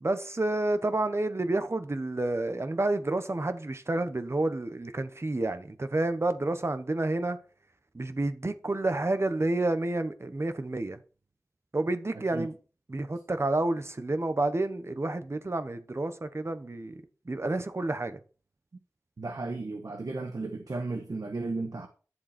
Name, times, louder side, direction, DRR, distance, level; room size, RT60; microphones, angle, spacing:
voice 1, 0.0-7.4 7.9-11.0 11.7-12.5 12.9-18.2, right 2 dB, 50° right, 1.2 m, -29 dB
voice 2, 12.1-12.5 19.2-21.9, right 3 dB, 85° right, 1.3 m, -34 dB
12.0 x 7.2 x 4.5 m
wide cardioid pair, 60°, 6 cm